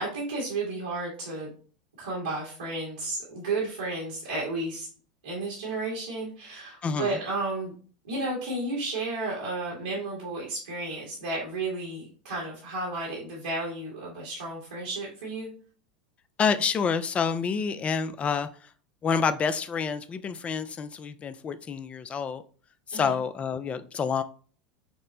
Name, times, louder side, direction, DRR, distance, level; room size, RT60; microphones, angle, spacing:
voice 1, 0.0-1.5 2.0-4.9 5.2-7.7 8.1-15.5 22.9-23.1, right 2 dB, 90° right, -5 dB, 1.6 m, -32 dB
voice 2, 6.8-7.2 16.4-18.5 19.0-22.4 22.9-24.2, left 6 dB, 30° left, 12 dB, 0.4 m, -28 dB
5.8 x 2.1 x 2.7 m, 0.41 s
hypercardioid pair, 90°, 4 cm